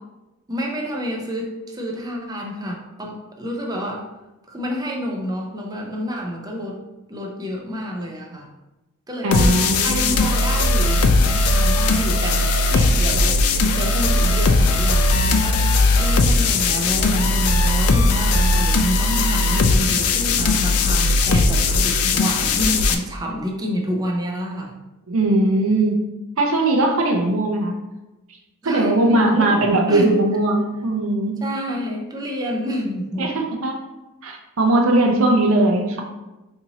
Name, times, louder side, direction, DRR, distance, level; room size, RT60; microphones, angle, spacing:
voice 1, 0.5-4.1 4.5-6.8 7.1-8.5 9.1-24.7 28.6-30.1 31.4-33.3, equal, 15° right, 0 dB, 0.5 m, -28 dB
voice 2, 9.2-9.9 25.1-26.0 26.4-27.7 28.6-31.4 33.2-33.8 34.2-36.0, right 2 dB, 65° right, 1 dB, 0.6 m, -19 dB
sound 1, 9.3-22.9, left 2 dB, 75° left, 0.4 m, -18 dB
4.2 x 2.8 x 2.8 m, 1.0 s
head